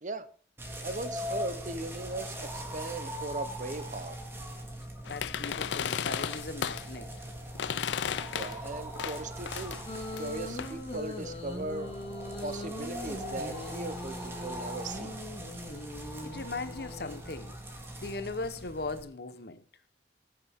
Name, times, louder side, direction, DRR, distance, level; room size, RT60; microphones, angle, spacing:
sound 1, 0.6-19.0, equal, 15° right, 1.8 m, -41 dB
voice 1, 0.8-4.2 8.3-9.8 10.2-11.9 12.4-15.2, right 2 dB, 45° right, 0.8 m, -38 dB
sound 2, 5.1-6.9 7.6-8.7 9.0-10.7, left 8 dB, 80° left, 0.4 m, -34 dB
voice 2, 5.1-7.1 16.2-17.6 18.0-19.6, left 3 dB, 60° left, 0.9 m, -38 dB
sound 3, 9.9-17.2, left 1 dB, 30° left, 2.0 m, -41 dB
20.0 x 6.8 x 3.6 m
head